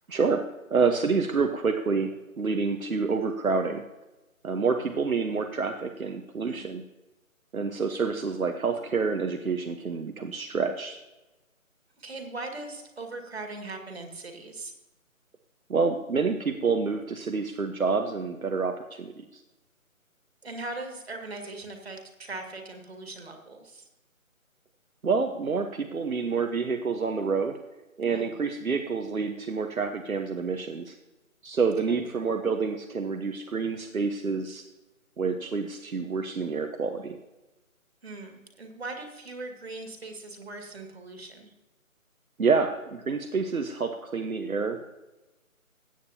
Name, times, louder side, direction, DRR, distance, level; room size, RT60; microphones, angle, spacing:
voice 1, 0.1-3.8 4.4-6.8 7.5-11.0 15.7-19.4 25.0-27.6 28.0-31.0 31.4-34.6 35.2-37.2 42.4-44.8, right 5 dB, 75° right, 5 dB, 1.1 m, -28 dB
voice 2, 12.0-14.7 20.4-23.9 28.1-28.3 31.9-32.1 38.0-41.5, right 2 dB, 45° right, 4 dB, 2.0 m, -40 dB
16.5 x 9.0 x 2.8 m, 1.0 s
figure-of-eight pair, 165°, 42 cm